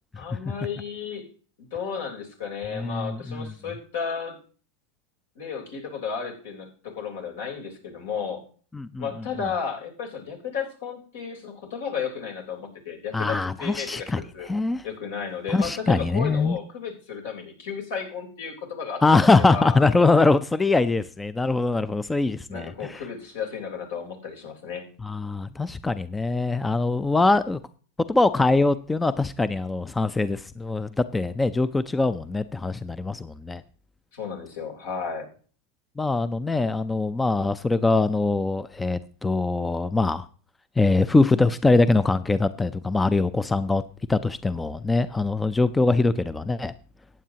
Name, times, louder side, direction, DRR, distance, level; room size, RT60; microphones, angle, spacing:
voice 1, 0.2-1.3 1.6-4.4 5.4-8.4 9.0-14.5 14.8-19.8 22.5-24.9 34.1-35.3, left 6 dB, 75° left, 3.7 m, -33 dB
voice 2, 2.7-3.5 8.7-9.1 9.4-9.5 13.1-14.2 14.5-14.8 15.5-16.6 19.0-23.0 25.0-27.6 28.1-33.6 36.0-40.2 40.8-43.8 44.1-46.7, left 3 dB, 10° left, 0.5 m, -23 dB
15.0 x 9.1 x 2.9 m
hypercardioid pair, 110°, 0 cm